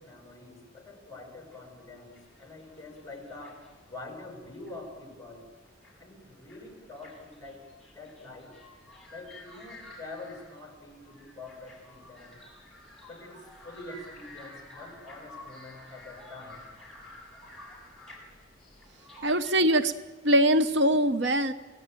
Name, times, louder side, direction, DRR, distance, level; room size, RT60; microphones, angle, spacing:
voice 1, 0.0-5.5 6.0-8.6 9.1-12.4 13.1-16.7, left 2 dB, 20° left, 3 dB, 6.5 m, -46 dB
sound 1, 1.5-3.9 4.4-4.9 5.4-6.0 6.3-19.5, left 1 dB, ahead, 6.9 m, -51 dB
voice 2, 19.2-19.9 20.2-21.5, right 1 dB, 65° right, 11 dB, 0.9 m, -22 dB
28.0 x 18.0 x 9.1 m, 1.4 s
head